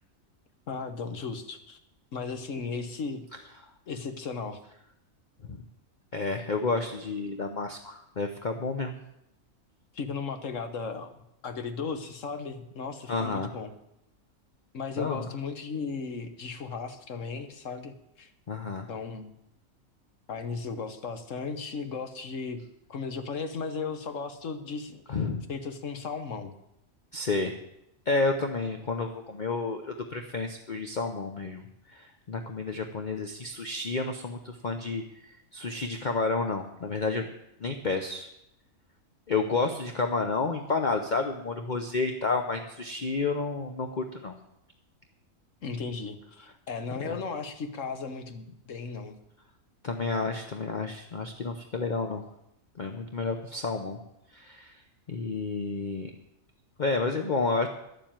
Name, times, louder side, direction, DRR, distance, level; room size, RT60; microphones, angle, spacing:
voice 1, 0.7-1.8 2.1-3.2 3.9-4.6 9.9-13.7 14.7-18.3 18.9-19.3 20.3-22.6 22.9-25.0 25.5-26.5 45.6-49.2, left 5 dB, 65° left, 8 dB, 1.5 m, -36 dB
voice 2, 6.1-8.9 13.1-13.5 15.0-15.3 18.5-18.9 25.1-25.4 27.1-27.5 28.1-37.3 37.6-38.3 39.3-44.3 47.0-47.2 49.8-52.2 52.8-54.0 54.3-54.8 55.1-56.1 56.8-57.7, left 3 dB, 40° left, 5 dB, 0.9 m, -30 dB
11.5 x 7.5 x 8.9 m, 0.81 s
omnidirectional pair, 1.4 m